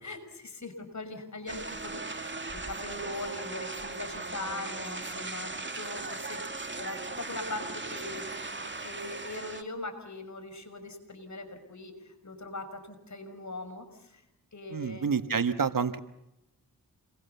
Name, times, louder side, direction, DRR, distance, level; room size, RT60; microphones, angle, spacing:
voice 1, 0.0-14.2 14.5-15.1, left 2 dB, 45° left, 7 dB, 5.9 m, -41 dB
sound 1, 1.5-9.6, right 3 dB, 30° right, 2.2 m, -38 dB
voice 2, 14.7-16.0, right 6 dB, 55° right, 11 dB, 1.5 m, -28 dB
28.5 x 22.5 x 7.0 m, 0.89 s
cardioid pair, 50°, 39 cm